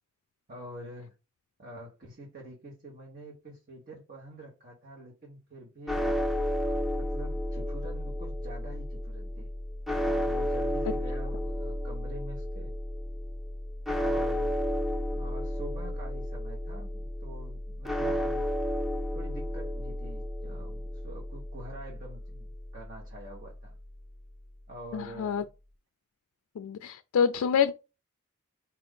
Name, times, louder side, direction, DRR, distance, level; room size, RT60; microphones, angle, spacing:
voice 1, 0.5-1.1 1.6-6.0 6.6-9.5 10.2-12.7 14.0-14.6 15.1-18.4 19.1-23.7 24.7-25.4, right 1 dB, 45° right, 1.1 m, -46 dB
sound 1, 5.9-24.1, left 1 dB, ahead, 0.5 m, -32 dB
voice 2, 24.9-25.4 26.6-27.7, left 7 dB, 75° left, 0.3 m, -27 dB
4.5 x 2.5 x 3.6 m
head